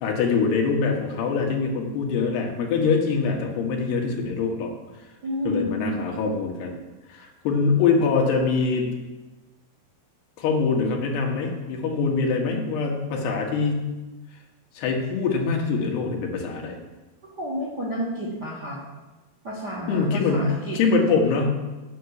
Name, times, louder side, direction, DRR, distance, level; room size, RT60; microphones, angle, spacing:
voice 1, 0.0-4.7 5.5-6.7 7.1-8.9 10.4-13.9 14.8-16.8 19.9-21.7, left 4 dB, 90° left, 1 dB, 3.5 m, -24 dB
voice 2, 5.2-6.0 17.4-18.8 19.4-20.8, equal, 60° right, -4 dB, 1.0 m, -30 dB
9.1 x 5.9 x 8.1 m, 1.1 s
omnidirectional pair, 4.5 m